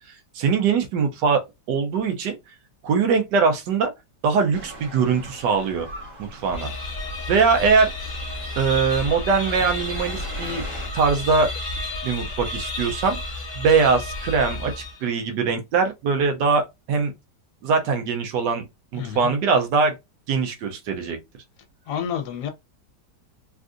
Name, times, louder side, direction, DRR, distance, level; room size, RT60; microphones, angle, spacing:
voice 1, 0.3-1.4 1.7-2.4 2.8-3.9 4.2-5.9 6.2-6.7 7.3-7.9 8.6-10.6 10.9-11.5 12.0-13.2 13.5-17.1 17.6-18.6 18.9-19.9 20.3-21.2, right 5 dB, 80° right, 1.2 m, -22 dB
sound 1, 4.5-10.9, equal, 50° right, 1.7 m, -40 dB
sound 2, 6.5-15.2, left 2 dB, 30° left, 0.8 m, -32 dB
voice 2, 18.9-19.3 21.9-22.5, left 8 dB, 70° left, 1.2 m, -29 dB
3.5 x 2.5 x 2.4 m
omnidirectional pair, 1.9 m